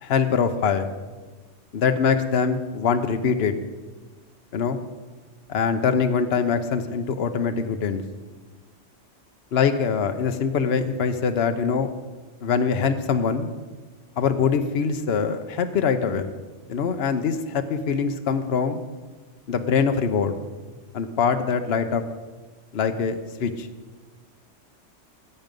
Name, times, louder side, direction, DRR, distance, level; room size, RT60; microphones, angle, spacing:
voice 1, 0.0-0.9 1.7-3.5 4.5-4.8 5.5-8.0 9.5-11.9 12.4-13.5 14.2-16.3 16.7-18.8 19.5-20.3 20.9-22.0 22.7-23.7, left 6 dB, 60° left, 8 dB, 1.0 m, -23 dB
17.0 x 7.7 x 5.3 m, 1.3 s
omnidirectional pair, 1.3 m